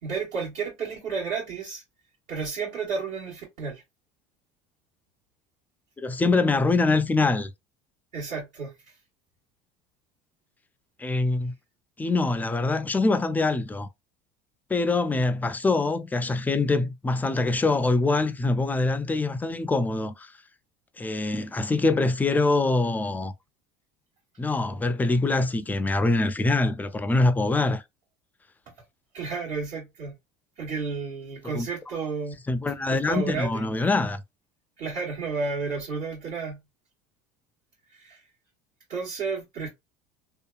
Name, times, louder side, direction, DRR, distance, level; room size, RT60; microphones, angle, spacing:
voice 1, 0.0-1.8 2.3-3.8 8.1-8.7 29.1-30.1 30.6-32.3 32.9-33.6 34.8-36.6 38.0-38.2 38.9-39.7, right 5 dB, 60° right, 1.3 m, -32 dB
voice 2, 6.0-7.5 11.0-11.5 12.0-13.9 14.7-20.3 21.0-23.3 24.4-27.8 31.5-31.9 32.5-34.2, left 3 dB, 10° left, 0.3 m, -24 dB
2.7 x 2.3 x 2.3 m
supercardioid pair, 105°, 16 cm